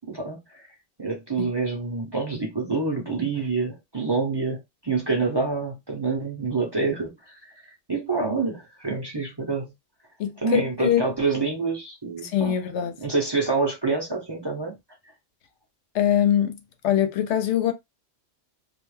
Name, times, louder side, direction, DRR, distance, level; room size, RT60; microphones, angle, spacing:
voice 1, 0.1-0.7 1.0-7.5 7.9-9.7 10.4-12.6 13.0-14.8, right 4 dB, 30° right, 0.6 m, -27 dB
voice 2, 10.2-11.0 12.2-12.9 15.9-16.6 16.8-17.7, left 10 dB, 85° left, 0.9 m, -23 dB
2.4 x 2.1 x 3.1 m
omnidirectional pair, 1.1 m